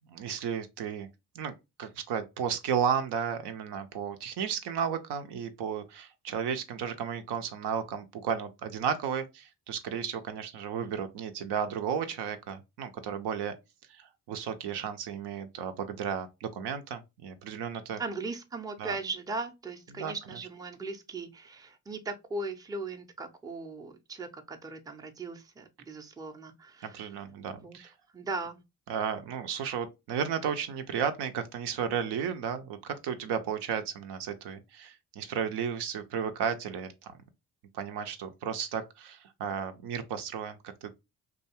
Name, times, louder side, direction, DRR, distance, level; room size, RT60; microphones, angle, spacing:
voice 1, 0.1-1.1 1.3-1.5 1.8-13.5 13.9-18.0 18.8-18.9 19.9-20.1 26.8-27.9 28.9-37.1 37.7-40.9, right 7 dB, 65° right, 0.5 m, -33 dB
voice 2, 18.0-27.1 27.6-27.8 28.1-28.6, right 3 dB, 10° right, 0.5 m, -38 dB
2.5 x 2.3 x 2.8 m
hypercardioid pair, 40°, 45 cm